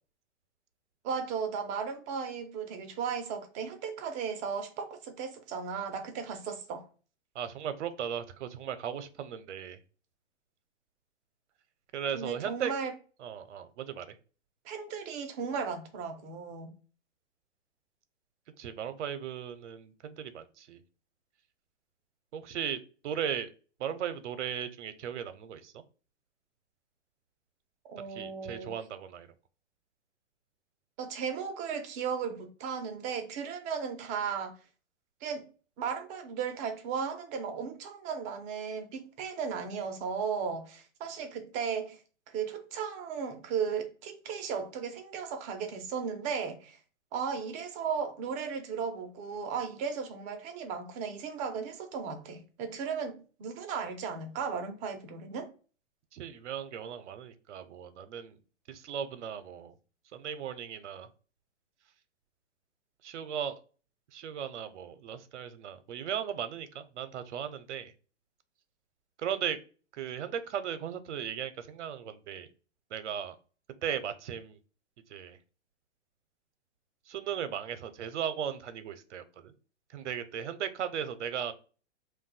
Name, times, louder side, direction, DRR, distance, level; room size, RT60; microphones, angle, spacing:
voice 1, 1.0-6.9 12.1-12.9 14.6-16.7 27.9-28.7 31.0-34.5 35.2-35.5 35.8-42.0 42.3-46.8 47.1-55.5, right 6 dB, 20° right, 0.5 m, -35 dB
voice 2, 7.3-9.8 11.9-12.7 13.2-14.1 18.6-20.8 22.3-22.8 23.0-23.5 23.8-25.7 28.1-29.3 56.1-58.4 58.7-59.7 60.1-61.1 63.0-63.6 64.1-67.9 69.2-69.6 69.9-72.5 72.9-73.4 73.8-74.6 75.1-75.4 77.1-79.5 79.9-81.5, right 8 dB, 75° right, 0.6 m, -37 dB
2.6 x 2.2 x 3.9 m
hypercardioid pair, 140°, 36 cm